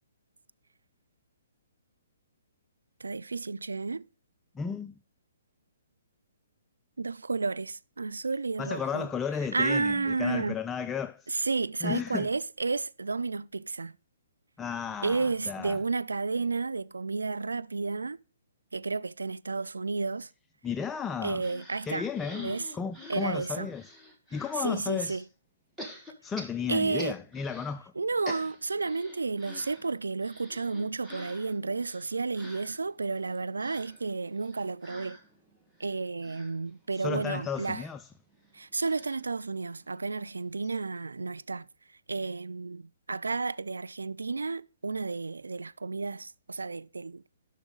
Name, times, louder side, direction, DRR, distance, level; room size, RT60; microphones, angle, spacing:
voice 1, 3.0-4.0 7.0-9.1 9.5-10.6 11.3-13.9 15.0-18.2 18.7-20.3 21.2-22.1 22.4-22.7 23.1-23.7 24.6-25.2 26.7-27.1 28.0-35.2 35.8-37.8 38.5-41.6 42.1-47.2, right 4 dB, 85° right, 0.3 m, -32 dB
voice 2, 4.5-4.9 8.6-11.4 11.8-12.3 14.6-15.8 20.6-21.4 21.8-23.9 24.3-25.3 26.2-27.9 36.9-38.1, left 6 dB, 15° left, 0.3 m, -34 dB
sound 1, 21.4-24.7 25.8-27.8 28.0-40.0 40.3-40.4 40.6-40.8, equal, 5° right, 1.6 m, -48 dB
11.5 x 5.9 x 3.8 m
hypercardioid pair, 130°, 0 cm